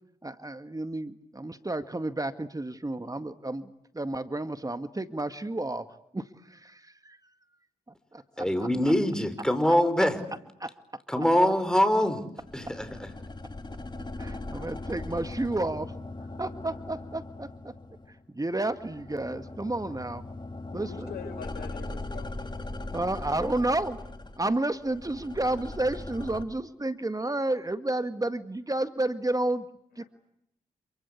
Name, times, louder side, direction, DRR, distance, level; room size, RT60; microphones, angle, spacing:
voice 1, 0.2-5.9 6.1-7.2 8.1-8.7 10.6-10.7 14.2-15.9 16.4-17.7 18.1-20.2 20.7-21.1 22.9-24.0 24.4-29.7 30.0-30.1, right 2 dB, 20° right, 10 dB, 1.9 m, -31 dB
voice 2, 8.4-10.2 11.1-12.3 12.5-13.1, equal, 5° left, 9 dB, 5.5 m, -24 dB
sound 1, 12.4-18.3 18.6-26.4, left 2 dB, 25° left, 3.2 m, -40 dB
voice 3, 20.7-22.4 30.0-30.1, left 6 dB, 85° left, 9 dB, 5.4 m, -42 dB
27.5 x 25.0 x 8.4 m, 0.76 s
supercardioid pair, 40°, 16 cm